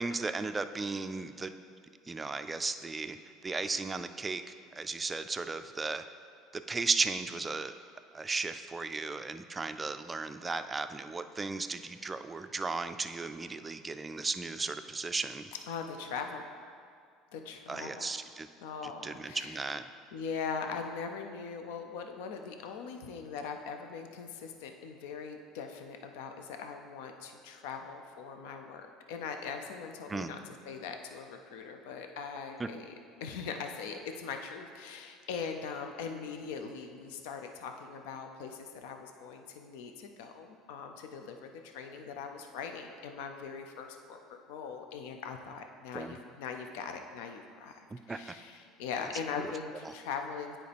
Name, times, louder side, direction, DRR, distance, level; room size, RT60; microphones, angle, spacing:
voice 1, 0.0-1.5 2.1-3.2 3.4-4.4 4.7-6.0 6.5-7.7 8.1-15.5 17.7-18.5 18.8-19.9 30.1-30.3 32.6-32.7 45.9-46.2 47.9-48.4 49.8-49.9, right 3 dB, 20° right, 9 dB, 0.3 m, -35 dB
voice 2, 15.7-16.4 17.3-18.1 18.6-19.6 20.1-30.4 30.7-32.9 33.2-50.6, left 6 dB, 80° left, 5 dB, 0.5 m, -41 dB
9.2 x 4.3 x 3.4 m, 2.2 s
supercardioid pair, 95°, 0 cm